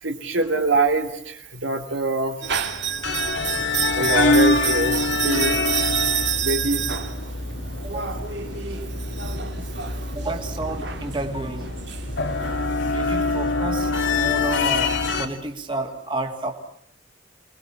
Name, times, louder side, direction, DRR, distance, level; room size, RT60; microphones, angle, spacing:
voice 1, 0.0-2.6 4.0-5.6 6.4-6.8, right 2 dB, 75° right, 4 dB, 3.0 m, -24 dB
sound 1, 2.4-12.6, right 8 dB, 60° right, 2.2 m, -29 dB
sound 2, 3.0-15.3, left 3 dB, 70° left, 2.4 m, -25 dB
voice 2, 7.8-8.2 9.2-9.3 9.8-11.7 12.8-16.5, right 2 dB, 25° right, 3 dB, 2.7 m, -31 dB
28.5 x 19.5 x 7.3 m, 0.70 s
head